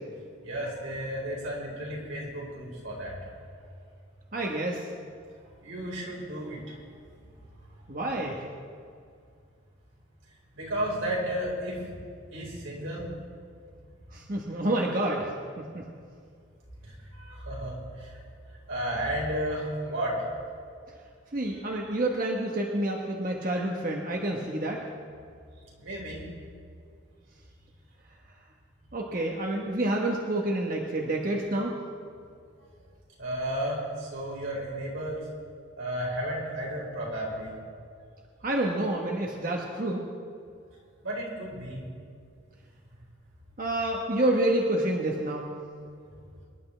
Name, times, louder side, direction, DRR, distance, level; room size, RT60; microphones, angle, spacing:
voice 1, 0.4-3.2 5.6-6.7 10.5-11.8 12.3-13.0 16.8-18.2 18.7-20.3 21.5-21.6 25.8-26.2 33.2-35.3 35.8-37.5 41.0-41.8, right 1 dB, 85° right, -4 dB, 4.5 m, -33 dB
voice 2, 4.3-4.9 7.9-8.5 14.1-15.3 15.6-15.8 21.3-24.9 28.9-31.8 38.4-40.0 43.6-45.5, right 1 dB, 45° right, 0 dB, 1.1 m, -28 dB
25.0 x 11.0 x 3.3 m, 2.2 s
head